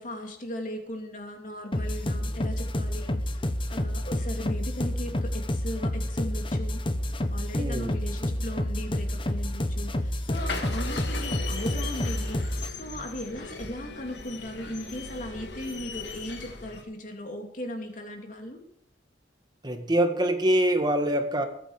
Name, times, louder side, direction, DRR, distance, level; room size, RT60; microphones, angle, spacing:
voice 1, 0.0-3.2 3.7-6.8 7.3-18.6, left 1 dB, 45° left, 3 dB, 3.1 m, -38 dB
sound 1, 1.7-12.7, left 1 dB, 30° left, 1.1 m, -29 dB
voice 2, 7.5-8.0 19.6-21.5, right 1 dB, 25° right, 6 dB, 1.7 m, -24 dB
sound 2, 10.3-16.8, left 3 dB, 75° left, 2.2 m, -38 dB
21.0 x 9.1 x 5.0 m, 0.71 s
head